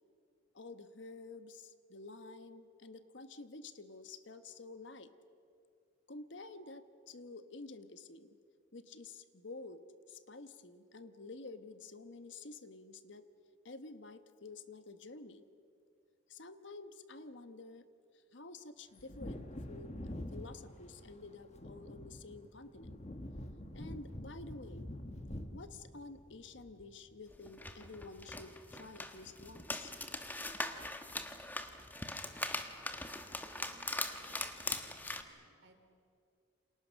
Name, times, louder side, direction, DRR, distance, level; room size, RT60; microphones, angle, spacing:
voice 1, 0.5-5.1 6.1-8.3 8.7-9.8 10.1-13.2 13.6-15.4 16.3-17.9 18.3-23.0 23.7-24.9 25.5-29.9, left 3 dB, 70° left, 10 dB, 1.3 m, -50 dB
Wind / Thunder, 19.0-27.2 27.5-27.6, left 1 dB, 35° left, 1.5 m, -46 dB
sound 1, 27.3-35.2, left 2 dB, 10° left, 1.3 m, -41 dB
voice 2, 33.5-34.3 34.7-35.8, right 1 dB, 65° right, 6 dB, 3.1 m, -65 dB
29.5 x 26.5 x 6.4 m, 2.5 s
head